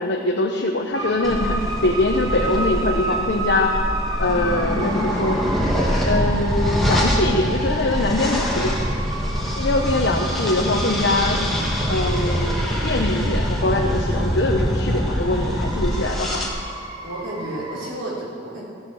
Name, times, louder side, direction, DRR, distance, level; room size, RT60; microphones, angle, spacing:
voice 1, 0.0-3.7 4.2-5.4 6.0-8.8 9.6-11.4 11.9-16.5, left 2 dB, 60° left, 0 dB, 0.7 m, -23 dB
sound 1, 0.9-17.9, right 2 dB, 20° right, 1.0 m, -32 dB
sound 2, 1.2-16.5, equal, ahead, 1.3 m, -24 dB
voice 2, 17.0-18.6, right 1 dB, 80° right, -6 dB, 3.5 m, -32 dB
14.5 x 6.5 x 6.2 m, 2.2 s
head